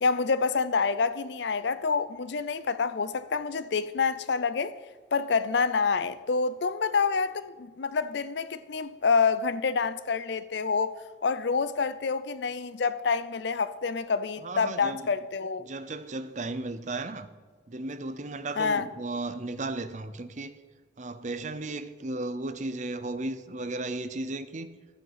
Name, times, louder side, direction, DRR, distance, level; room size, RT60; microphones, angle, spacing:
voice 1, 0.0-4.8 5.1-10.9 11.2-15.7 18.6-18.9, left 5 dB, 65° left, 0.5 m, -27 dB
voice 2, 14.4-15.1 15.6-17.3 17.7-20.6 21.0-24.7, right 2 dB, 40° right, 0.6 m, -35 dB
11.5 x 8.5 x 5.7 m
head